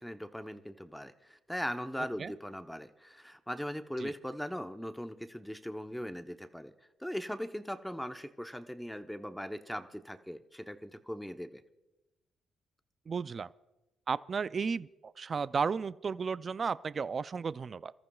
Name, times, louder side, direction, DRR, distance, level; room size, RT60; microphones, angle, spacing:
voice 1, 0.0-6.7 7.0-11.6, equal, ahead, 7 dB, 0.9 m, -39 dB
voice 2, 13.1-13.5 14.1-14.9 15.2-17.9, right 5 dB, 40° right, 16 dB, 0.4 m, -33 dB
28.5 x 14.0 x 2.4 m, 1.0 s
cardioid pair, 90°, 0 cm